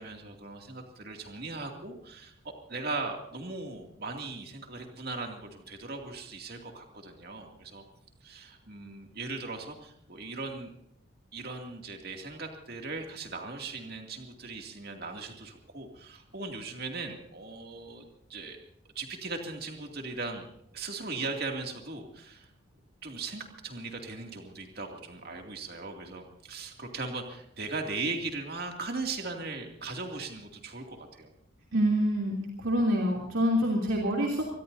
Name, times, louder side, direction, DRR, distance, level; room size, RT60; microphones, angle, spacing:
voice 1, 0.0-7.8 8.2-10.7 11.3-18.0 18.3-18.6 18.9-20.5 20.7-22.5 23.0-31.3, right 3 dB, 50° right, 3 dB, 2.5 m, -38 dB
voice 2, 31.7-34.4, equal, 75° right, -2 dB, 3.1 m, -26 dB
25.0 x 20.0 x 2.7 m, 0.73 s
head